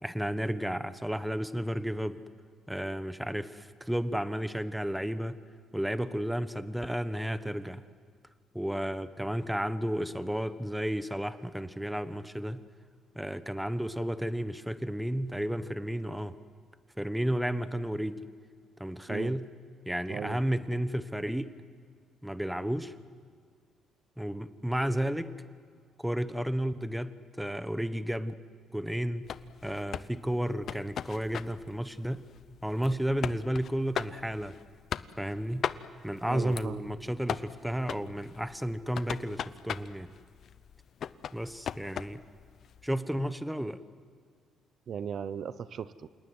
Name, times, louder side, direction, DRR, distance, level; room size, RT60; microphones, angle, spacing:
voice 1, 0.0-2.2 2.7-5.4 5.7-7.8 8.5-12.6 13.1-16.4 17.0-18.3 18.8-19.5 19.9-21.5 22.2-22.9 24.2-25.4 26.0-28.3 28.7-29.3 29.6-32.2 32.6-34.6 35.2-35.7 36.0-40.1 41.3-42.2 42.8-43.8, equal, 5° right, 13 dB, 1.2 m, -32 dB
voice 2, 20.1-20.4 36.3-36.9 44.9-46.1, right 8 dB, 60° right, 15 dB, 0.8 m, -37 dB
sound 1, 29.2-43.0, left 8 dB, 60° left, 0.8 m, -40 dB
28.0 x 19.0 x 9.6 m, 2.1 s
cardioid pair, 90°, 0 cm